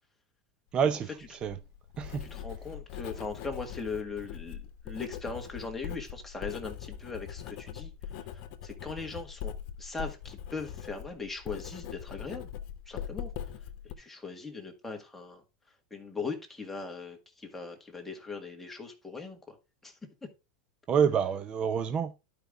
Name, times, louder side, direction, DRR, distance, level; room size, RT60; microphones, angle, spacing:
voice 1, 0.7-1.6 2.0-2.3 20.9-22.1, right 7 dB, 25° right, 0.5 m, -28 dB
Writing, 1.2-13.9, left 9 dB, 50° left, 1.2 m, -41 dB
voice 2, 2.2-7.9 8.6-9.5 9.8-12.5 12.9-13.3 14.0-15.4 15.9-19.5 19.8-19.9 20.2-20.3, left 4 dB, 5° left, 1.7 m, -39 dB
11.5 x 5.1 x 3.6 m
supercardioid pair, 145°, 4 cm